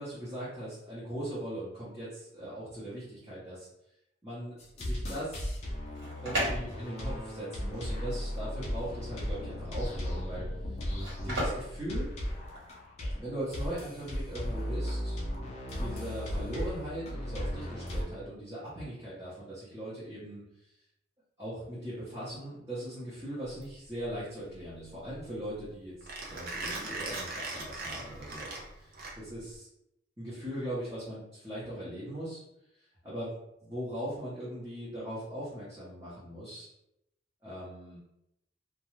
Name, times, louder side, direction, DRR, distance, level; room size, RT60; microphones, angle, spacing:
voice 1, 0.0-3.7 4.2-5.5 6.2-10.4 11.2-12.1 13.1-15.2 15.8-20.4 21.4-25.9 26.3-29.7 30.2-32.4 33.0-33.3 33.7-36.7 37.4-38.0, right 1 dB, 15° right, -11 dB, 0.8 m, -39 dB
sound 1, 4.6-18.0, equal, 35° left, 0.5 m, -36 dB
sound 2, 5.7-12.8, right 1 dB, 85° right, 1.4 m, -38 dB
Mechanisms, 23.5-29.6, right 2 dB, 50° right, 0.5 m, -40 dB
2.4 x 2.2 x 3.0 m, 0.83 s
head